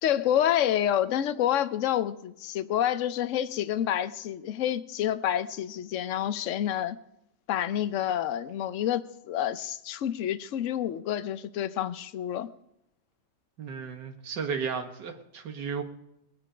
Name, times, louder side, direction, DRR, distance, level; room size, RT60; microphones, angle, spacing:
voice 1, 0.0-7.0 7.5-12.5, left 11 dB, 60° left, 13 dB, 0.9 m, -28 dB
voice 2, 13.6-15.8, right 6 dB, 80° right, 5 dB, 2.0 m, -34 dB
20.5 x 9.2 x 5.0 m, 0.84 s
omnidirectional pair, 1.9 m